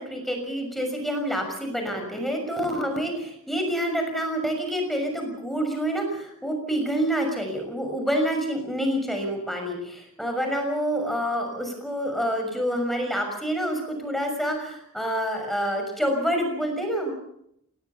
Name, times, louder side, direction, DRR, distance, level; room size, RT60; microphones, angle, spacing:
voice 1, 0.0-17.1, equal, ahead, 4 dB, 6.2 m, -27 dB
25.0 x 19.0 x 7.0 m, 0.74 s
head